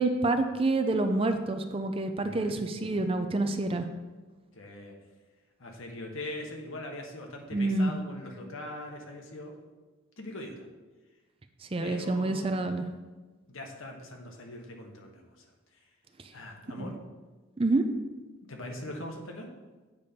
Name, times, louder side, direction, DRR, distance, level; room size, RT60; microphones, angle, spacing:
voice 1, 0.0-3.9 7.5-7.9 11.7-12.8 16.8-16.9 17.6-17.9, right 2 dB, 25° right, 7 dB, 0.4 m, -27 dB
voice 2, 2.2-2.6 4.5-4.9 5.6-9.7 10.2-10.7 11.8-12.6 13.5-15.4 15.7-15.8 16.3-16.9 18.5-19.5, left 1 dB, 75° left, 2 dB, 1.2 m, -41 dB
8.3 x 4.2 x 5.2 m, 1.2 s
head